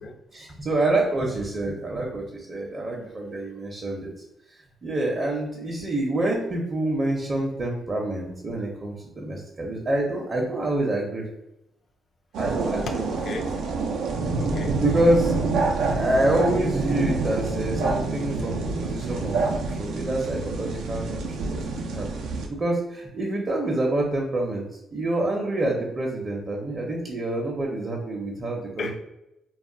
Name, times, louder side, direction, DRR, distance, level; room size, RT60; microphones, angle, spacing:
voice 1, 0.3-4.1 4.8-11.3 12.4-13.0 14.8-15.3 15.9-21.6 21.9-22.1 22.5-24.7 24.9-28.9, right 1 dB, 35° right, -1 dB, 0.6 m, -27 dB
sound 1, 12.3-22.5, right 3 dB, 80° right, 0.4 m, -27 dB
voice 2, 12.9-13.5 14.4-14.8 28.8-28.9, left 3 dB, 55° left, 4 dB, 0.4 m, -34 dB
2.3 x 2.0 x 3.7 m, 0.89 s
cardioid pair, 90°, 0 cm